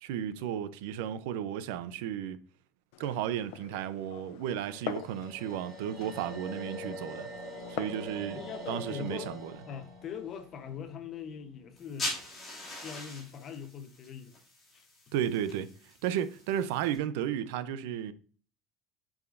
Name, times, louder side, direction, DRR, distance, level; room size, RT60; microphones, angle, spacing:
voice 1, 0.0-2.4 3.0-7.3 7.7-8.4 8.7-9.5 15.1-15.7 16.0-18.1, right 10 dB, 85° right, 0.5 m, -33 dB
Glass, 2.9-8.1, left 13 dB, 80° left, 0.5 m, -44 dB
sound 1, 4.5-11.6, equal, 25° right, 1.7 m, -44 dB
voice 2, 8.3-9.3 9.7-12.1 12.8-14.4 14.7-14.9, left 7 dB, 35° left, 0.8 m, -41 dB
sound 2, 11.8-17.0, left 2 dB, 15° left, 2.7 m, -42 dB
8.3 x 4.9 x 2.5 m
cardioid pair, 170°, 0 cm